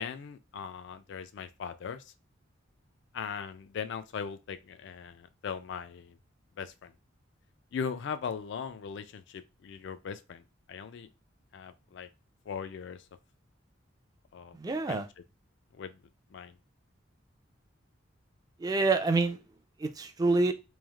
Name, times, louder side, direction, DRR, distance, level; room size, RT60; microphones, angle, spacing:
voice 1, 0.0-2.0 3.1-6.2 6.6-6.9 7.7-10.4 10.7-11.1 11.5-12.1 12.5-13.0 14.3-14.6 14.9-15.0 15.8-16.0 16.3-16.5, left 6 dB, 60° left, 0.3 m, -39 dB
voice 2, 14.6-15.1 18.6-19.4 19.8-20.5, right 3 dB, 20° right, 0.3 m, -27 dB
3.1 x 2.4 x 2.3 m
head